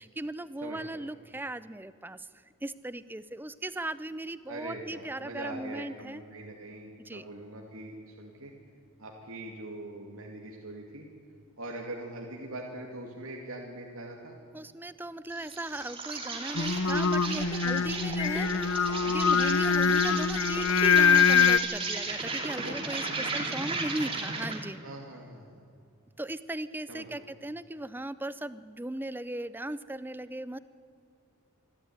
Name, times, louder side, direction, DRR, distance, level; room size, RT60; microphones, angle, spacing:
voice 1, 0.0-2.3 2.6-6.2 7.0-7.2 14.5-24.8 26.2-30.6, right 1 dB, 10° right, 15 dB, 0.5 m, -37 dB
voice 2, 0.6-1.0 4.5-8.5 9.0-11.1 11.6-14.4 17.6-17.9 22.6-22.8 23.0-23.8 24.8-25.7 26.9-27.3, right 2 dB, 75° right, 0 dB, 2.5 m, -42 dB
Insect, 15.3-24.7, right 3 dB, 25° right, 2.6 m, -35 dB
Singing, 16.6-21.6, left 6 dB, 70° left, 0.8 m, -24 dB
25.5 x 12.5 x 9.5 m, 2.4 s
head